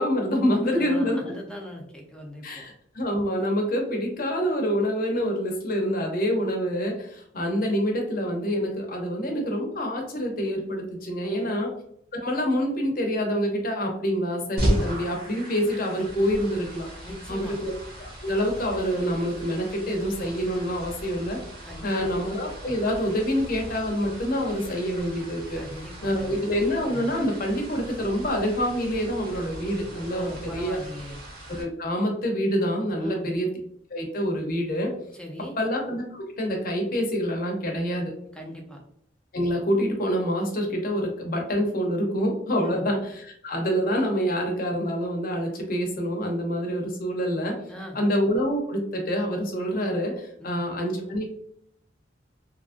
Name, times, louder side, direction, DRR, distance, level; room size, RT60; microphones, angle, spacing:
voice 1, 0.0-1.3 2.4-11.7 12.1-16.9 17.3-17.7 18.0-21.4 21.8-25.6 26.0-30.8 31.5-33.5 33.9-34.9 35.6-38.1 39.3-47.6 47.9-51.2, equal, 50° left, 2 dB, 0.7 m, -26 dB
voice 2, 0.7-2.6 11.2-11.6 17.0-17.6 21.6-22.1 25.5-26.4 30.1-31.2 33.0-33.3 35.1-35.6 38.3-38.8 42.6-42.9 47.7-48.0 50.4-50.6, equal, 5° left, 0 dB, 0.5 m, -39 dB
sound 1, 14.6-31.6, equal, 55° right, 1.1 m, -36 dB
2.8 x 2.5 x 2.4 m, 0.70 s
head